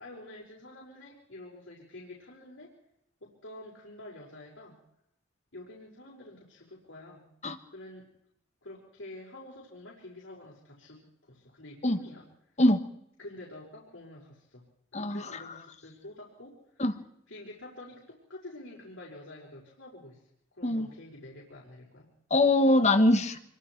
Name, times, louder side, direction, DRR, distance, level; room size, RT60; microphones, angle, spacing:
voice 1, 0.0-2.8 3.2-4.8 5.5-7.3 7.7-8.1 8.6-12.6 13.2-14.6 14.9-16.8 17.3-20.2 20.5-22.1, left 1 dB, 80° left, -5 dB, 5.6 m, -48 dB
voice 2, 14.9-15.5 16.8-16.9 20.6-20.9 22.3-23.4, left 1 dB, 35° left, 9 dB, 1.4 m, -23 dB
26.0 x 23.5 x 4.7 m, 0.75 s
head